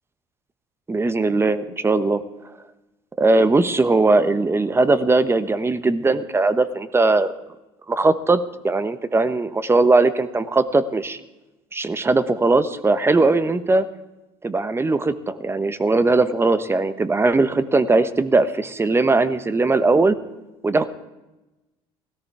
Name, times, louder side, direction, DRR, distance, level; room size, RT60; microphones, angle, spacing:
voice 1, 0.9-2.2 3.2-7.3 7.9-11.2 11.7-13.9 14.4-20.2 20.6-20.9, right 3 dB, 20° right, 13 dB, 1.1 m, -19 dB
17.0 x 13.5 x 4.8 m, 1.0 s
supercardioid pair, 85°, 13 cm